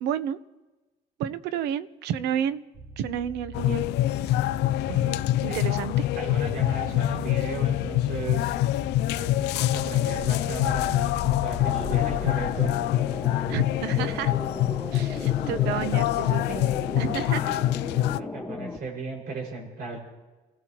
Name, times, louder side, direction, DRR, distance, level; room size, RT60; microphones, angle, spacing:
voice 1, 0.0-0.4 1.2-2.6 3.0-3.8 4.9-6.0 13.5-14.3 14.9-16.7 17.0-17.5, right 9 dB, 90° right, 13 dB, 0.9 m, -31 dB
sound 1, 2.7-12.2, right 1 dB, 40° right, 3.6 m, -41 dB
sound 2, 3.5-18.2, left 14 dB, 85° left, 0.4 m, -25 dB
voice 2, 5.5-5.8 6.1-8.5 9.1-12.7 18.2-20.0, right 3 dB, 65° right, -1 dB, 5.7 m, -36 dB
sound 3, 11.6-18.8, left 2 dB, 5° left, 1.6 m, -36 dB
29.5 x 16.0 x 3.0 m, 1.2 s
cardioid pair, 110°, 17 cm